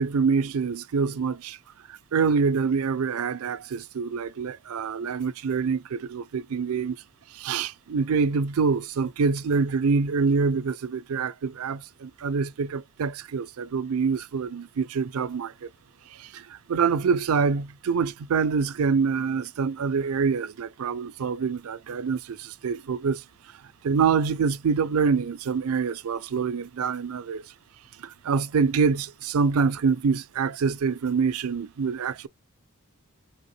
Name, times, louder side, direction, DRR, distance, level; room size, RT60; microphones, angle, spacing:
voice 1, 0.0-1.6 1.9-7.0 7.3-15.7 16.1-23.2 23.8-27.4 28.0-32.3, right 5 dB, 80° right, 0.4 m, -26 dB
3.6 x 3.3 x 4.1 m
head